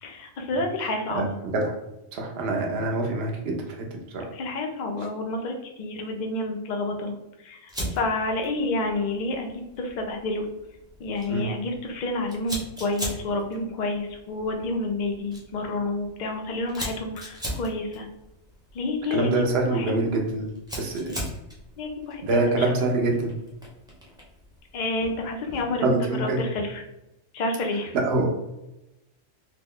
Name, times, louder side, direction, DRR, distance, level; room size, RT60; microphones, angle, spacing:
voice 1, 0.0-1.3 4.3-7.1 7.4-10.5 11.0-18.1 18.7-19.4 19.7-19.9 21.0-21.2 21.8-22.7 24.7-26.8 27.3-27.9, left 2 dB, 60° left, 3 dB, 0.4 m, -29 dB
voice 2, 2.1-4.2 11.3-11.5 19.1-20.5 20.8-21.1 22.2-23.3 25.8-26.4 27.9-28.4, right 2 dB, 60° right, 1 dB, 0.8 m, -25 dB
Fire, 7.7-25.9, equal, 5° right, 0.5 m, -40 dB
2.9 x 2.2 x 3.6 m, 0.92 s
omnidirectional pair, 1.3 m